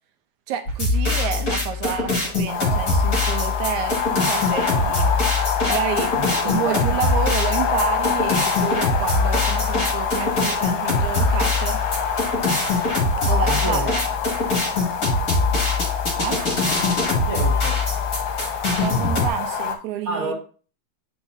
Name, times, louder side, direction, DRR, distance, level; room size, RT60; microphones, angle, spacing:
voice 1, 0.5-5.1 5.7-6.2 6.4-11.8 13.2-14.0 16.2-16.4 18.7-20.3, right 10 dB, 80° right, 8 dB, 1.9 m, -29 dB
sound 1, 0.7-19.3, left 3 dB, 35° left, 1.7 m, -23 dB
sound 2, 2.5-19.7, left 7 dB, 65° left, 1.8 m, -26 dB
voice 2, 6.1-7.0 13.4-13.9 17.2-17.9 20.0-20.3, right 2 dB, 35° right, -3 dB, 1.5 m, -30 dB
8.9 x 4.8 x 2.6 m, 0.37 s
omnidirectional pair, 3.6 m